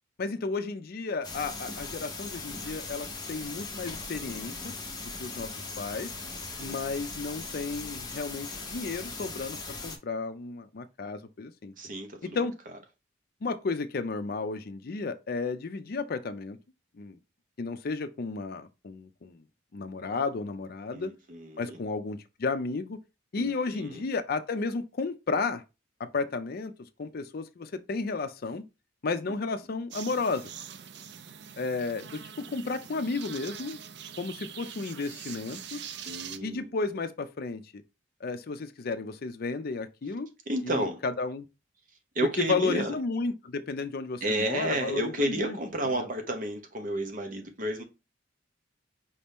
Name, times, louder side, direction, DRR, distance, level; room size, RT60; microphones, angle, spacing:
voice 1, 0.2-4.8 5.0-6.2 6.6-11.7 12.2-12.6 13.4-16.6 16.9-17.2 17.6-19.4 19.7-21.1 21.6-23.0 23.3-25.6 26.0-28.7 29.0-30.5 31.6-33.8 34.2-35.8 36.4-37.8 38.2-40.3 40.6-41.5 42.5-45.6 45.9-46.1, left 4 dB, 50° left, 0.5 m, -33 dB
sound 1, 1.2-10.0, left 3 dB, 20° left, 1.0 m, -39 dB
voice 2, 11.8-12.4 20.9-21.8 23.4-24.0 36.1-36.7 40.5-41.0 42.1-42.9 44.2-47.8, right 1 dB, 45° right, 0.9 m, -31 dB
sound 2, 29.9-36.4, right 8 dB, 60° right, 0.4 m, -43 dB
5.1 x 2.7 x 3.5 m
head